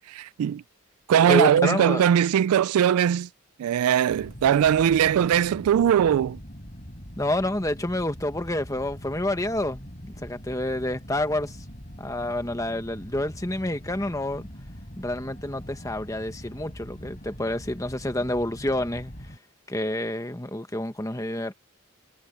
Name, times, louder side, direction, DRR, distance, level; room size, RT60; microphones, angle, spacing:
voice 1, 0.1-0.6 1.1-3.3 3.6-6.4, right 9 dB, 85° right, 0.3 m, -20 dB
voice 2, 1.3-2.0 7.2-11.6 12.0-14.5 15.0-19.1 19.7-21.5, left 1 dB, 15° left, 1.2 m, -28 dB
sound 1, 4.1-19.4, equal, 35° left, 4.8 m, -43 dB
head